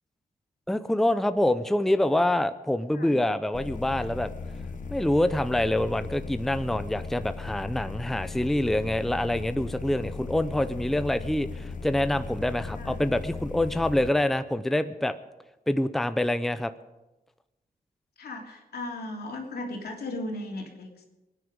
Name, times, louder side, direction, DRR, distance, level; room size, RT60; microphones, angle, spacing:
voice 1, 0.7-4.3 4.9-15.1 15.7-16.7, left 1 dB, ahead, 11 dB, 0.6 m, -26 dB
sound 1, 3.5-14.1, left 4 dB, 55° left, 1.3 m, -37 dB
voice 2, 12.7-13.0 18.2-21.1, left 2 dB, 85° left, 1 dB, 3.0 m, -36 dB
24.5 x 9.8 x 5.3 m, 1.0 s
wide cardioid pair, 120°, 16 cm